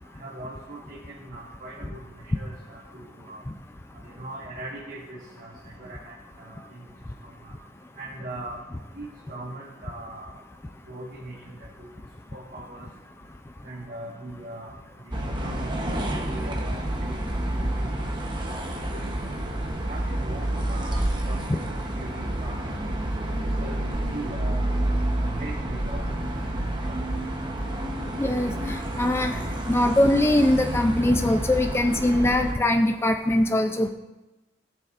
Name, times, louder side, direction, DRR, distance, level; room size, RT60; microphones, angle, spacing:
voice 1, 0.2-3.4 4.0-6.8 7.2-7.6 8.0-8.6 8.9-10.4 10.9-11.9 12.3-12.9 13.6-14.7 15.0-17.2 17.5-18.0 18.4-18.5 18.9-19.4 19.8-22.8 23.4-24.7 25.1-26.2 26.4-26.5 26.8-27.0, right 1 dB, 45° right, -5 dB, 1.5 m, -41 dB
sound 1, 15.1-32.5, right 1 dB, 25° right, 0.9 m, -29 dB
voice 2, 28.2-29.4 29.7-33.9, left 1 dB, 15° left, 4 dB, 0.4 m, -22 dB
18.5 x 6.7 x 2.5 m, 1.1 s
head